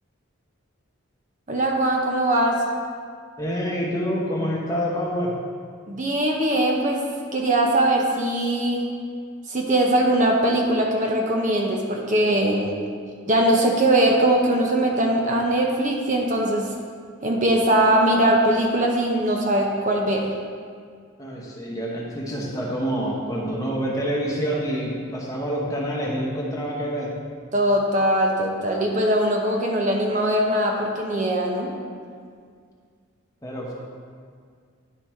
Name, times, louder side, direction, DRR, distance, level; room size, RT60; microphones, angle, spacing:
voice 1, 1.5-2.6 5.9-7.0 7.3-8.8 9.5-12.8 13.3-16.7 17.2-20.3 27.5-31.7, right 1 dB, 35° right, 0 dB, 0.7 m, -21 dB
voice 2, 3.4-5.3 21.2-27.1 33.4-33.7, equal, 15° left, -4 dB, 1.0 m, -27 dB
11.0 x 4.0 x 4.5 m, 2.1 s
head